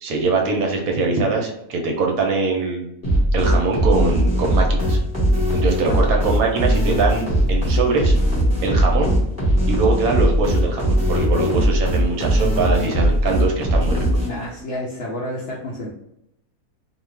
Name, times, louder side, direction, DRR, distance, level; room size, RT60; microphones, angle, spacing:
voice 1, 0.0-2.9 3.3-5.0 5.5-8.1 8.6-9.1 9.7-14.1, right 3 dB, 70° right, 1 dB, 1.0 m, -22 dB
sound 1, 3.0-14.6, equal, 10° left, 0.9 m, -19 dB
voice 2, 5.8-6.2 14.3-15.9, left 1 dB, 70° left, -5 dB, 0.7 m, -30 dB
2.5 x 2.3 x 3.2 m, 0.80 s
omnidirectional pair, 1.7 m